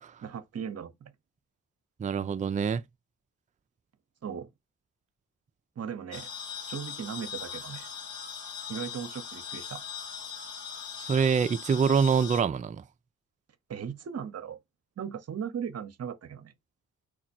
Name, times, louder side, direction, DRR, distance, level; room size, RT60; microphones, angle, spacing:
voice 1, 0.2-1.1 4.2-4.5 5.8-6.3 6.7-7.9 8.7-9.9 13.7-14.6 15.0-16.5, right 7 dB, 45° right, 0.8 m, -37 dB
voice 2, 2.0-2.8 11.0-12.8, right 6 dB, 20° right, 0.4 m, -25 dB
sound 1, 6.1-12.4, left 7 dB, 55° left, 1.1 m, -40 dB
4.7 x 2.1 x 4.2 m
supercardioid pair, 50°, 36 cm